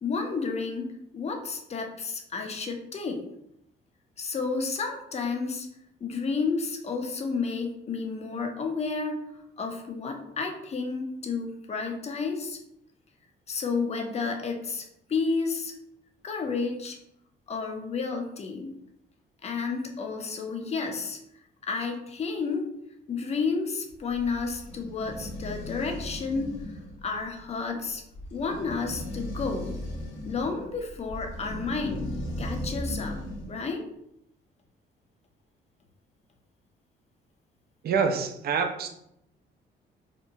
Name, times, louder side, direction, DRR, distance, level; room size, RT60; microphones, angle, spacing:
voice 1, 0.0-3.2 4.2-5.7 6.0-9.2 9.6-12.6 13.5-15.7 16.2-17.0 17.5-18.7 19.4-21.2 21.7-22.7 23.1-28.0 28.3-29.8 30.3-33.2 33.5-33.8, left 4 dB, 35° left, 3 dB, 0.5 m, -31 dB
sound 1, 23.9-33.6, equal, 85° left, 0.7 m, -37 dB
voice 2, 37.8-38.9, right 5 dB, 50° right, 6 dB, 0.4 m, -26 dB
2.8 x 2.1 x 2.6 m, 0.78 s
cardioid pair, 90°, 20 cm